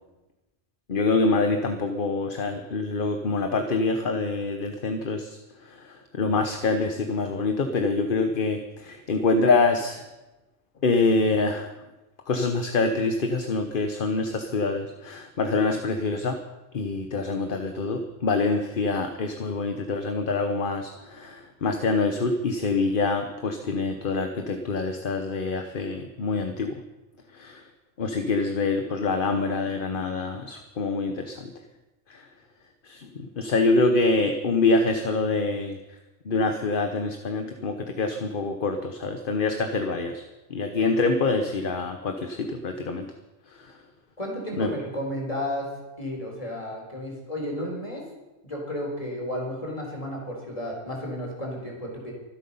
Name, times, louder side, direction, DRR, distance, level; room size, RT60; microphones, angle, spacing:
voice 1, 0.9-10.0 10.8-11.7 12.3-16.4 16.7-26.7 27.3-27.6 28.0-31.5 32.1-32.3 32.8-35.8 36.2-40.2 40.5-43.1 43.5-43.8 44.6-44.7, left 3 dB, 50° left, 6 dB, 1.1 m, -25 dB
voice 2, 44.2-45.7 46.0-48.0 48.4-52.1, left 1 dB, 30° left, -1 dB, 4.1 m, -32 dB
24.5 x 8.2 x 5.5 m, 1.1 s
omnidirectional pair, 1.2 m